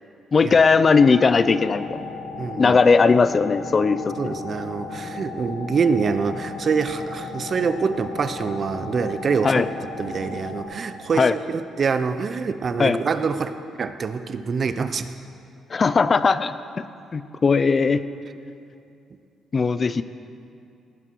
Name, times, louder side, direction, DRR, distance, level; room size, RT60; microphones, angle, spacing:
voice 1, 0.3-2.0 2.6-4.4 9.4-9.7 11.2-11.3 12.8-13.0 15.7-16.6 17.1-18.0 19.5-20.0, left 4 dB, 35° left, 14 dB, 0.4 m, -18 dB
sound 1, 0.8-10.6, left 3 dB, 85° left, 2.5 m, -35 dB
voice 2, 2.4-2.8 4.2-9.6 10.0-15.1, right 5 dB, 45° right, 11 dB, 0.6 m, -25 dB
18.0 x 10.0 x 4.6 m, 2.6 s
cardioid pair, 90°, 0 cm